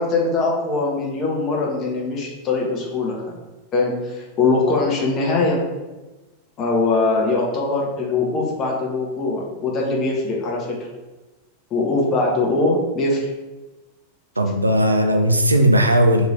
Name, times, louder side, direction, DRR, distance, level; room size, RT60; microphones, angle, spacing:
voice 1, 0.0-3.2 3.7-5.6 6.6-10.8 11.7-13.3, left 3 dB, 30° left, -1 dB, 0.9 m, -21 dB
voice 2, 14.4-16.3, equal, 80° right, 5 dB, 0.3 m, -17 dB
2.9 x 2.9 x 3.9 m, 1.1 s
figure-of-eight pair, 90°, 0 cm